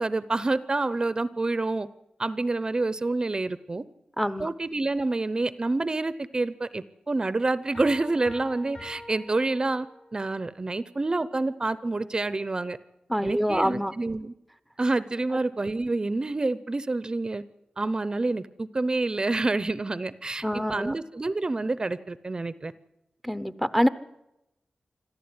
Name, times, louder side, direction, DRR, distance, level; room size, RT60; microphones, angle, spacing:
voice 1, 0.0-1.9 2.2-3.8 4.4-9.9 10.1-12.8 13.2-14.3 14.8-17.4 17.8-22.7, right 2 dB, 30° right, 15 dB, 0.7 m, -28 dB
voice 2, 4.2-4.5 13.1-13.9 20.4-20.9 23.2-23.9, equal, ahead, 13 dB, 0.8 m, -25 dB
sound 1, 7.7-10.2, left 1 dB, 50° left, 7.3 m, -45 dB
26.0 x 13.5 x 9.6 m, 0.91 s
wide cardioid pair, 120°, 3 cm